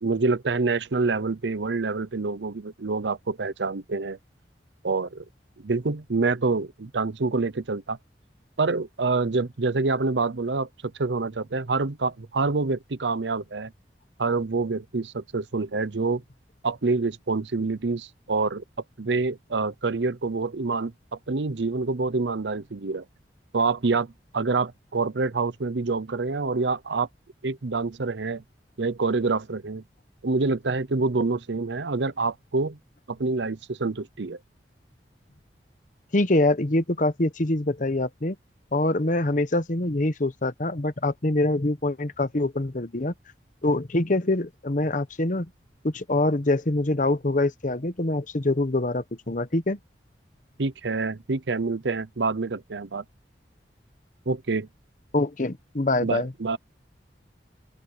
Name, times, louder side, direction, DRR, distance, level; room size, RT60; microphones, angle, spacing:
voice 1, 0.0-4.2 4.8-5.2 5.6-8.0 8.6-13.7 14.2-16.2 16.6-18.6 19.0-23.0 23.5-27.1 27.4-28.4 28.8-29.8 30.2-32.8 33.1-34.4 50.6-53.0 54.3-54.7 56.0-56.6, right 3 dB, 90° right, 0.8 m, -26 dB
voice 2, 36.1-38.4 38.7-43.1 43.6-45.5 45.8-49.8 55.1-56.3, left 2 dB, 45° left, 1.0 m, -24 dB
open air
head